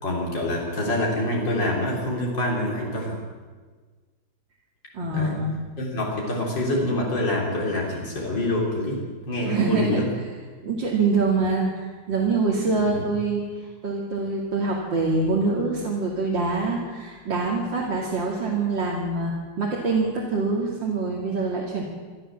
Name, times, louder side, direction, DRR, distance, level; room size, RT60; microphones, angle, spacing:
voice 1, 0.0-3.2 5.1-5.4 5.8-10.1 12.9-13.0, left 1 dB, 80° left, -2 dB, 4.4 m, -26 dB
voice 2, 4.9-5.5 9.5-10.1 10.6-13.4 13.8-21.8, right 3 dB, 90° right, -3 dB, 3.3 m, -25 dB
25.5 x 13.5 x 7.5 m, 1.4 s
omnidirectional pair, 2.0 m